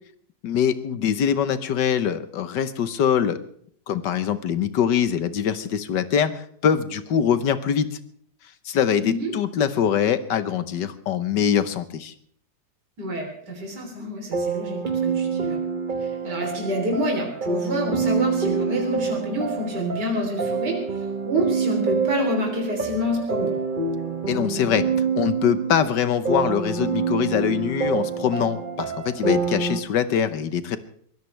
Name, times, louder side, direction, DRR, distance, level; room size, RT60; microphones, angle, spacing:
voice 1, 0.4-3.4 3.9-7.9 8.6-12.1 24.3-24.9 25.2-30.8, left 8 dB, 75° left, 12 dB, 1.7 m, -23 dB
voice 2, 13.0-15.6 16.0-23.6, equal, 65° right, 1 dB, 4.1 m, -28 dB
sound 1, 14.3-29.8, right 5 dB, 35° right, 1.0 m, -26 dB
23.0 x 16.5 x 3.3 m, 0.62 s
omnidirectional pair, 1.9 m